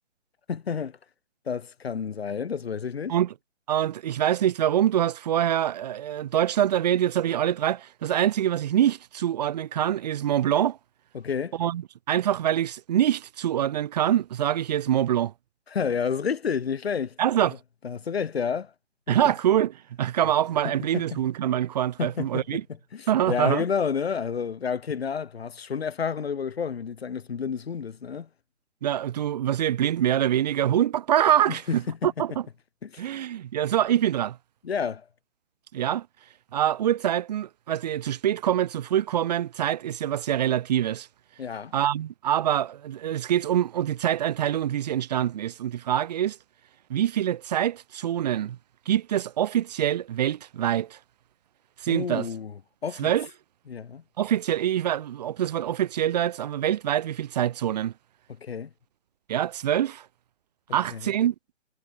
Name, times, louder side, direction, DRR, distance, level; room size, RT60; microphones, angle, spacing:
voice 1, 0.5-1.0 1.5-3.1 11.1-11.6 15.7-17.2 17.4-17.6 17.8-18.7 19.1-19.3 20.6-21.2 22.0-22.6 22.9-28.3 31.5-32.1 32.8-33.0 34.6-35.0 41.4-41.7 51.9-52.5 52.8-53.1 53.7-54.0 58.4-58.7 60.9-61.1, left 6 dB, 55° left, 2.8 m, -30 dB
voice 2, 3.7-10.8 11.6-15.3 17.2-17.6 19.1-22.6 23.1-23.6 28.8-32.5 33.0-34.4 35.7-36.1 36.5-41.1 41.7-46.4 46.9-48.6 48.9-51.0 51.8-52.3 53.0-53.3 54.2-57.9 59.3-60.1 60.7-61.4, right 11 dB, 35° right, 1.7 m, -25 dB
figure-of-eight pair, 145°, 37 cm